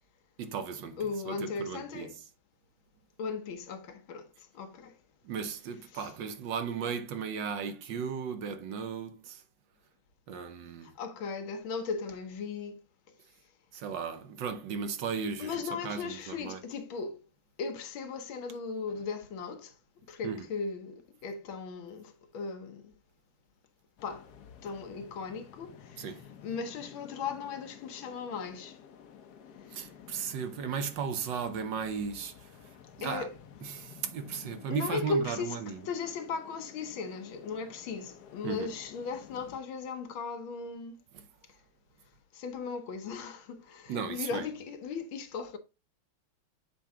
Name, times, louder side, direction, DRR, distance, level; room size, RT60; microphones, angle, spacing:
voice 1, 0.4-2.3 5.2-9.4 10.3-10.9 13.7-16.7 20.2-20.5 26.0-26.2 29.7-33.3 33.6-35.9 38.4-38.7 41.1-41.3 43.9-44.5, right 6 dB, 70° right, 1.5 m, -36 dB
voice 2, 1.0-2.1 3.2-4.3 4.5-4.9 5.9-6.1 11.0-12.8 15.4-17.2 17.6-19.7 20.1-22.9 24.0-24.3 24.6-26.0 26.4-28.8 33.0-33.3 34.7-35.6 35.9-41.0 42.3-45.6, left 4 dB, 80° left, 1.7 m, -37 dB
sound 1, 24.0-39.6, left 8 dB, 65° left, 1.1 m, -52 dB
7.2 x 4.5 x 3.6 m
omnidirectional pair, 2.2 m